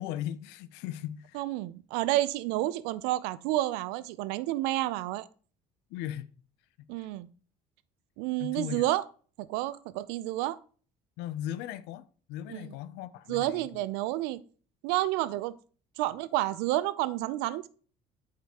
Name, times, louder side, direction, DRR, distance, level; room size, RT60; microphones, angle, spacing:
voice 1, 0.0-1.4 5.9-6.3 6.8-7.1 8.4-8.9 11.2-13.8, left 12 dB, 80° left, 0.5 m, -38 dB
voice 2, 1.3-5.3 6.9-7.3 8.2-9.0 9.4-10.6 12.5-12.7 13.3-14.4 14.8-15.5 16.0-17.7, right 16 dB, 85° right, 0.5 m, -30 dB
8.9 x 5.0 x 2.9 m
supercardioid pair, 80°, 17 cm